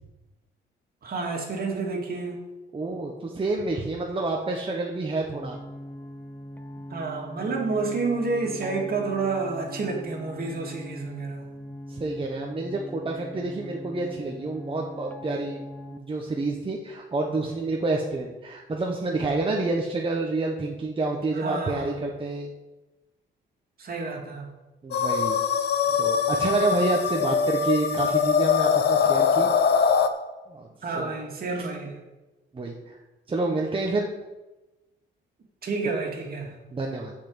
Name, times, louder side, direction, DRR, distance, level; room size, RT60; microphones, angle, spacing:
voice 1, 1.0-2.4 6.9-11.5 21.4-21.9 23.8-24.5 30.8-32.0 35.6-36.5, right 4 dB, 50° right, 0 dB, 2.7 m, -29 dB
voice 2, 2.7-5.6 11.9-22.5 24.8-29.5 30.5-31.2 31.5-31.7 32.5-33.0 33.3-34.1 36.7-37.1, right 2 dB, 25° right, 0 dB, 1.2 m, -28 dB
sound 1, 5.3-16.0, left 1 dB, 10° left, 1.1 m, -41 dB
sound 2, 24.9-30.1, left 6 dB, 55° left, 0.9 m, -22 dB
8.6 x 5.8 x 8.0 m, 1.1 s
cardioid pair, 90°, 20 cm